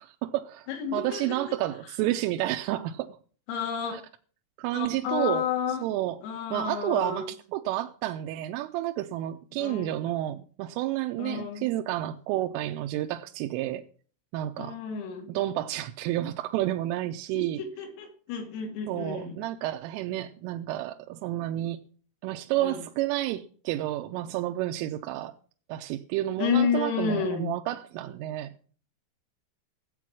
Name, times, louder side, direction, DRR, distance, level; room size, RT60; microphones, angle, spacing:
voice 1, 0.0-3.2 3.9-4.0 4.6-5.5 5.8-6.2 6.5-13.8 14.3-14.8 15.3-17.6 18.9-21.8 22.2-25.3 25.7-28.5, right 14 dB, 85° right, 3.2 m, -30 dB
voice 2, 0.7-1.4 3.5-4.0 4.7-5.8 6.2-7.3 9.6-10.0 11.2-11.7 14.6-15.3 17.3-19.4 22.6-22.8 26.4-27.5, left 7 dB, 85° left, 5.2 m, -30 dB
15.0 x 8.4 x 6.1 m
omnidirectional pair, 5.8 m